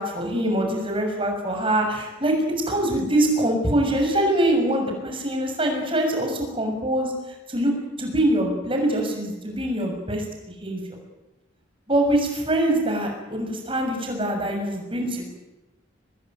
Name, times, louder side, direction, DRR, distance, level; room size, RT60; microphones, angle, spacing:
voice 1, 0.0-2.4 2.7-7.1 7.5-7.7 8.0-10.8 11.9-15.3, right 1 dB, 25° right, 3 dB, 6.7 m, -24 dB
25.0 x 20.0 x 9.4 m, 1.0 s
head